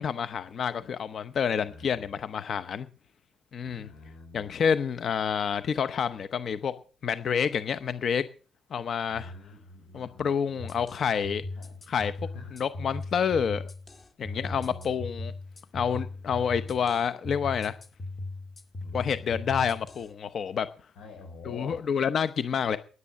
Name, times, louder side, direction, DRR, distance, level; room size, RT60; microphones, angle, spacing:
voice 1, 0.0-2.9 3.5-3.9 4.3-6.7 7.0-8.2 8.7-9.3 9.9-11.4 11.9-12.1 12.5-13.6 14.2-15.3 15.7-17.8 18.9-20.7 21.4-22.8, left 7 dB, 55° left, 0.8 m, -28 dB
voice 2, 1.6-2.1 3.6-4.6 9.1-10.9 11.5-11.8 12.3-12.5 14.3-15.1 18.8-19.3 21.0-21.8, left 3 dB, 80° left, 5.6 m, -46 dB
sound 1, 10.6-20.1, left 2 dB, 35° left, 1.9 m, -38 dB
9.8 x 9.6 x 7.5 m
cardioid pair, 90°, 0 cm